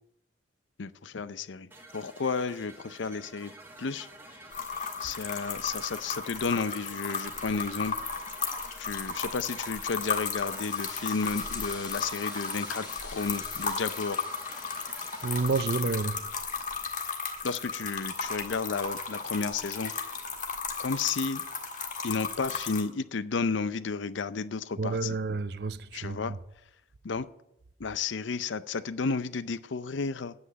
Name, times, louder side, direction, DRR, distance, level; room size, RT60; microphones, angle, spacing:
voice 1, 0.8-1.7 1.9-3.5 3.8-4.1 5.0-7.9 8.8-14.2 17.4-19.9 20.8-21.4 22.0-25.2 25.9-26.3 27.0-27.3 27.8-30.3, left 4 dB, 80° left, 0.6 m, -32 dB
sound 1, 1.7-15.4, right 1 dB, 10° right, 1.4 m, -49 dB
sound 2, 4.5-22.8, left 5 dB, 40° left, 1.7 m, -35 dB
sound 3, 9.7-16.5, left 4 dB, 20° left, 2.1 m, -48 dB
voice 2, 15.2-16.3 24.8-26.4, right 4 dB, 55° right, 0.5 m, -30 dB
9.8 x 8.0 x 9.1 m
head